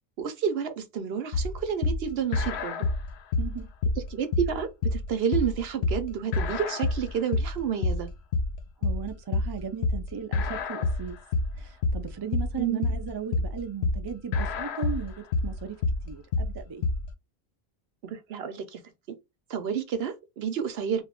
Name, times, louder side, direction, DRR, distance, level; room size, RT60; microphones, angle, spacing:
voice 1, 0.2-2.8 4.1-8.1 12.6-12.9 18.0-18.8 19.5-21.0, right 8 dB, 70° right, 0.9 m, -30 dB
sound 1, 1.3-17.1, left 3 dB, 80° left, 0.8 m, -28 dB
voice 2, 8.8-11.2 11.6-15.8 16.0-16.9, right 6 dB, 35° right, 0.4 m, -37 dB
2.7 x 2.3 x 3.5 m
omnidirectional pair, 1.1 m